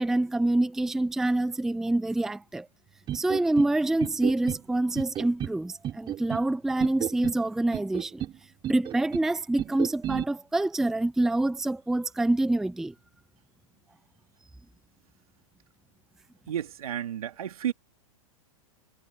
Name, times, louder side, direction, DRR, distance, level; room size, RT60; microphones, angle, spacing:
voice 1, 0.0-2.7 3.1-8.2 8.7-12.9, right 2 dB, ahead, 0.5 m, -26 dB
sound 1, 3.1-3.7 4.0-4.6 4.9-5.6 5.8-6.5 6.8-7.4 7.7-8.3 8.6-9.3 9.6-10.2, right 11 dB, 25° right, 4.0 m, -32 dB
voice 2, 16.5-17.7, right 10 dB, 85° right, 3.2 m, -32 dB
hypercardioid pair, 130°, 18 cm